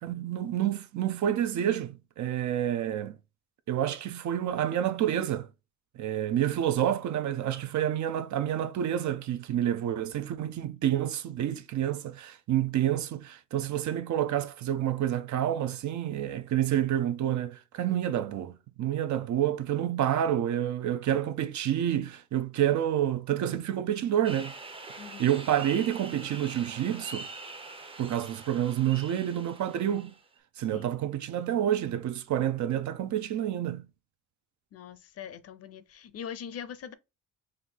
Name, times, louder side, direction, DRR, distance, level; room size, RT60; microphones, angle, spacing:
voice 1, 0.0-3.2 3.7-5.5 6.0-24.5 25.2-27.3 28.0-30.1 30.6-33.9, right 11 dB, 60° right, 0.6 m, -28 dB
sound 1, 24.2-30.4, right 3 dB, 15° right, 0.6 m, -44 dB
voice 2, 30.7-31.0 34.7-36.9, left 8 dB, 45° left, 0.6 m, -42 dB
4.4 x 2.6 x 3.7 m
cardioid pair, 140°, 33 cm